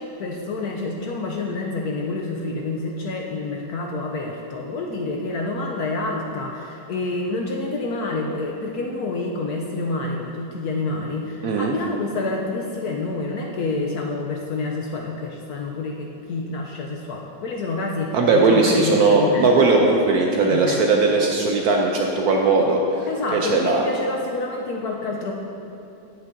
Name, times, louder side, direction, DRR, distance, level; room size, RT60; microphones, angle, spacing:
voice 1, 0.0-19.5 20.3-20.8 23.1-25.3, left 3 dB, 70° left, 0 dB, 0.9 m, -28 dB
voice 2, 11.4-11.7 18.1-23.8, right 3 dB, 70° right, 1 dB, 0.9 m, -19 dB
10.0 x 8.3 x 2.6 m, 2.7 s
omnidirectional pair, 2.1 m